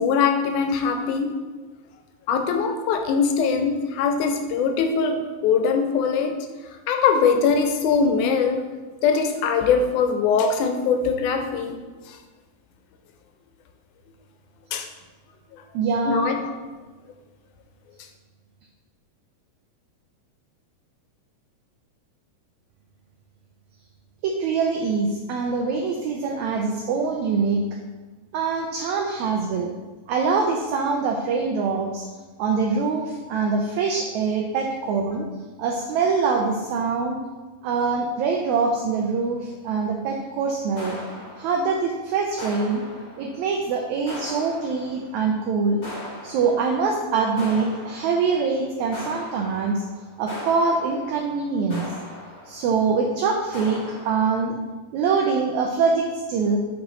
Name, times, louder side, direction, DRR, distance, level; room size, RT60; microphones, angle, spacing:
voice 1, 0.0-1.3 2.3-6.4 6.9-8.6 9.0-11.8 12.1-12.2 14.7-14.9 15.5-15.6 16.1-16.5, left 5 dB, 80° left, 5 dB, 2.0 m, -22 dB
voice 2, 15.7-16.4 24.2-27.6 28.3-29.7 30.1-32.0 32.4-35.3 35.6-37.2 37.6-41.0 41.4-42.8 43.2-45.8 46.2-49.8 50.2-51.8 52.5-54.6 54.9-56.6, right 4 dB, 75° right, 1 dB, 1.8 m, -24 dB
sound 1, 40.8-42.0 42.4-43.6 44.1-45.2 45.8-47.0 47.4-48.5 48.9-52.9 53.5-54.2, left 1 dB, 35° left, 1.1 m, -39 dB
7.6 x 4.9 x 4.1 m, 1.3 s
omnidirectional pair, 3.8 m